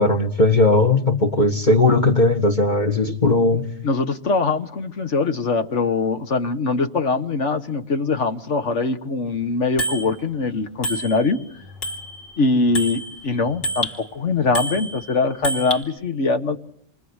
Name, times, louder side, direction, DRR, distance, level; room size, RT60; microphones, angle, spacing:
voice 1, 0.0-3.7, left 2 dB, 40° left, 1.9 m, -17 dB
voice 2, 3.8-11.4 12.4-16.6, left 3 dB, 70° left, 1.8 m, -22 dB
Bicycle bell, 9.8-10.1 10.8-11.5 11.8-14.0 14.5-15.8, equal, 55° left, 3.6 m, -28 dB
28.0 x 24.0 x 8.2 m
omnidirectional pair, 1.3 m